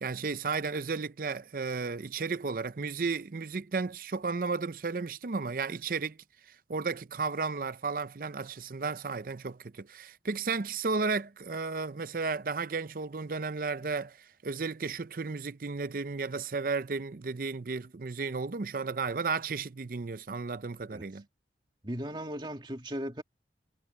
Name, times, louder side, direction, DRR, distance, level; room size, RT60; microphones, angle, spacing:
voice 1, 0.0-6.2 6.5-21.2, right 4 dB, 50° right, 0.6 m, -33 dB
voice 2, 21.8-23.2, equal, 25° right, 2.1 m, -37 dB
head